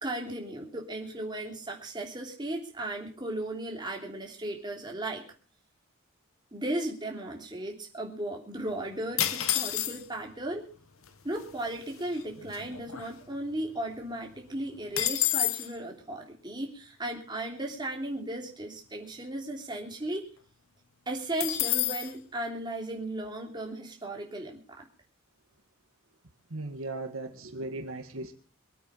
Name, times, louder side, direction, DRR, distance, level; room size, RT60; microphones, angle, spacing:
voice 1, 0.0-5.2 6.5-10.7 11.2-20.2 21.1-24.9, right 1 dB, 20° right, 0 dB, 3.3 m, -36 dB
sound 1, 9.2-10.3 11.1-11.2 11.3-11.7 12.1-13.6 13.9-14.0 14.3-15.7 21.4-22.1, left 13 dB, 90° left, 1.2 m, -29 dB
voice 2, 26.5-28.3, right 2 dB, 80° right, 6 dB, 1.8 m, -37 dB
24.0 x 8.7 x 5.5 m, 0.40 s
head